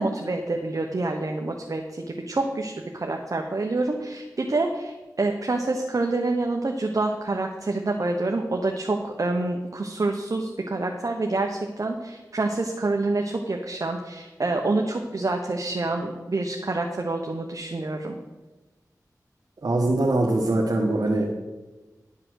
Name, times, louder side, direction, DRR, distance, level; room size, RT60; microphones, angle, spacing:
voice 1, 0.0-18.2, right 2 dB, 55° right, 2 dB, 1.0 m, -27 dB
voice 2, 19.6-21.3, right 2 dB, 70° right, -2 dB, 1.3 m, -22 dB
11.5 x 5.7 x 6.4 m, 1.2 s
wide cardioid pair, 55°, 7 cm